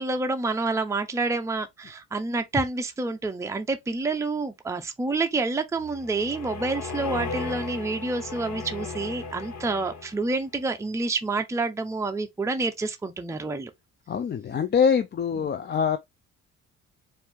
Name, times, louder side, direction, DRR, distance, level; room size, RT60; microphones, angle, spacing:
voice 1, 0.0-13.7, right 3 dB, 10° right, 0.6 m, -28 dB
sound 1, 5.7-10.4, left 4 dB, 65° left, 1.5 m, -36 dB
voice 2, 14.1-16.0, left 7 dB, 35° left, 0.5 m, -24 dB
4.4 x 2.7 x 3.5 m
cardioid pair, 90°, 30 cm